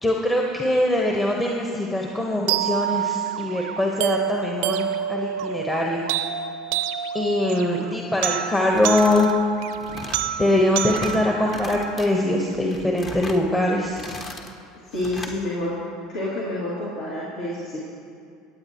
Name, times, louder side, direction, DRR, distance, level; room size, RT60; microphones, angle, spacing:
voice 1, 0.0-6.0 7.1-9.3 10.4-14.0, left 1 dB, 15° left, -1 dB, 1.1 m, -22 dB
sound 1, 2.5-12.5, right 10 dB, 70° right, 0.5 m, -28 dB
sound 2, 8.6-9.3 9.6-10.3 10.7-11.2 11.5-12.1 12.5-13.4 13.8-14.5 14.9-15.4, left 2 dB, 35° left, 1.3 m, -38 dB
voice 2, 14.9-15.7 16.1-17.8, left 1 dB, 65° left, -7 dB, 2.5 m, -28 dB
23.5 x 8.5 x 3.0 m, 2.4 s
hypercardioid pair, 75°, 0 cm